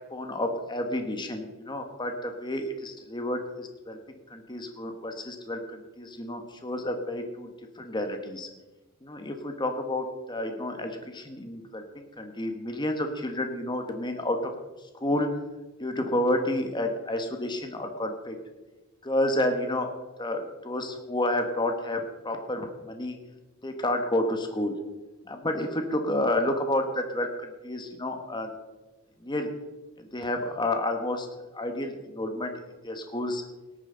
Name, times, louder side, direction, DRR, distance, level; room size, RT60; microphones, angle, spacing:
voice 1, 0.0-4.0 4.3-7.5 7.7-8.5 9.0-14.5 14.8-15.3 15.8-18.4 19.0-19.9 20.2-23.2 23.6-24.8 25.2-28.5 29.2-29.5 30.0-31.3 31.5-32.5 32.8-33.4, left 1 dB, 20° left, 5 dB, 1.2 m, -30 dB
18.0 x 9.0 x 3.9 m, 1.2 s
head